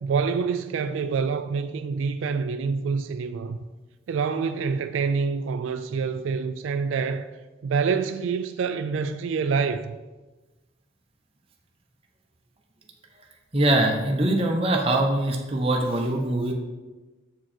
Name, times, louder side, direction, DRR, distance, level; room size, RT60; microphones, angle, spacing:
voice 1, 0.0-3.6 4.1-7.3 7.6-10.0, right 5 dB, 80° right, 0.3 m, -26 dB
voice 2, 13.5-16.5, right 1 dB, 30° right, 0.9 m, -23 dB
7.6 x 4.6 x 4.3 m
head